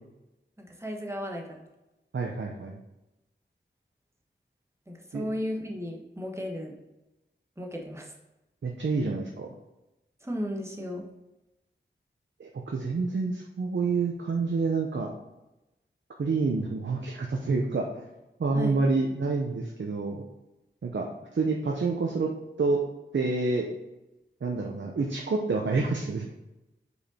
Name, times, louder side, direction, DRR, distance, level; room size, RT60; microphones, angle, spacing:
voice 1, 0.6-1.6 4.9-6.8 7.6-8.1 10.2-11.0 18.5-18.8, equal, 15° right, 0 dB, 1.2 m, -35 dB
voice 2, 2.1-2.8 5.1-5.2 8.6-9.5 12.4-15.1 16.2-18.0 18.4-20.2 20.8-22.3 22.6-22.8 23.1-23.7 24.4-26.3, right 3 dB, 70° right, 1 dB, 0.7 m, -28 dB
5.3 x 4.8 x 4.2 m, 0.97 s
wide cardioid pair, 75°, 20 cm